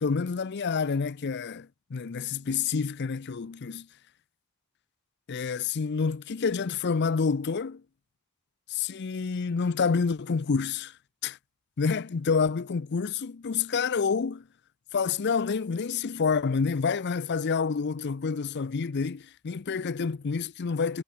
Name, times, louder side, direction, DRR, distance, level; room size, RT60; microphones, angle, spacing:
voice 1, 0.0-3.9 5.3-7.8 8.7-10.9 11.2-11.4 11.8-14.4 14.9-21.0, left 5 dB, 50° left, 0.5 m, -28 dB
head